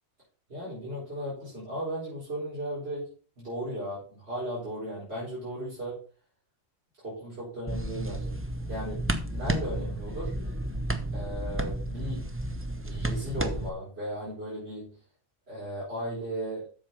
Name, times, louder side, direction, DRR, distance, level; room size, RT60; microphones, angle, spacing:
voice 1, 0.5-3.1 3.4-6.0 7.0-8.3 8.7-10.3 11.1-12.3 12.9-14.9 15.5-16.7, right 1 dB, 55° right, -8 dB, 4.9 m, -36 dB
sound 1, 7.7-13.7, right 1 dB, 15° right, 0.6 m, -32 dB
7.9 x 6.8 x 5.3 m, 0.39 s
omnidirectional pair, 1.2 m